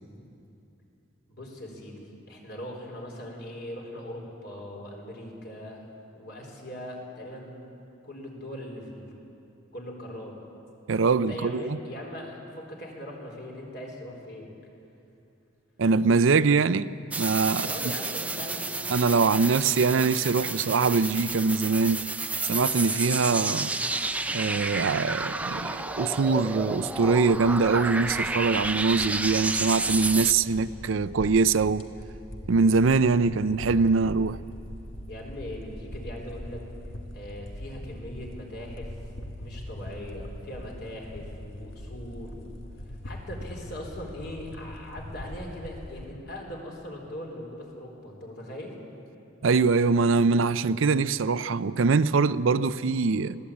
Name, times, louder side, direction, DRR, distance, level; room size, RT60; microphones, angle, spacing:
voice 1, 1.3-5.8 6.1-7.6 8.0-9.1 9.7-10.3 11.1-14.5 17.6-18.9 35.1-36.6 37.1-38.9 39.4-42.5 43.0-48.8, left 1 dB, 55° left, 4.0 m, -40 dB
voice 2, 10.9-11.8 15.8-17.7 18.9-22.0 22.5-23.7 24.3-31.9 32.5-34.4 49.4-53.4, right 4 dB, 80° right, 0.5 m, -23 dB
sound 1, 17.1-30.3, right 3 dB, 5° right, 0.4 m, -31 dB
sound 2, 27.1-46.1, left 1 dB, 80° left, 1.6 m, -42 dB
21.0 x 15.5 x 8.6 m
head